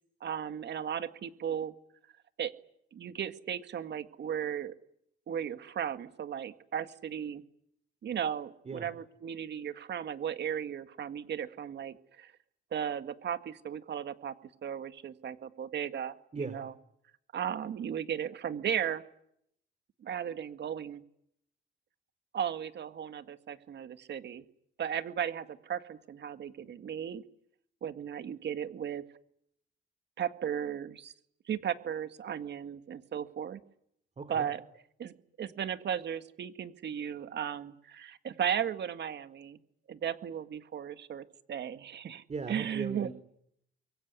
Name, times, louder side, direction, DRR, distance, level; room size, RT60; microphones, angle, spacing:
voice 1, 0.2-1.8 2.4-2.5 2.9-4.7 5.3-7.4 8.0-12.3 12.7-14.3 14.6-16.7 17.3-19.0 20.0-21.0 22.3-24.4 24.8-27.2 27.8-29.0 30.2-31.1 31.5-33.6 34.3-34.6 35.0-39.6 39.9-43.1, right 8 dB, 60° right, 10 dB, 1.9 m, -36 dB
voice 2, 16.3-16.6 34.2-34.5 42.3-43.1, right 4 dB, 35° right, 10 dB, 3.6 m, -38 dB
26.5 x 23.0 x 9.7 m, 0.75 s
cardioid pair, 90°, 20 cm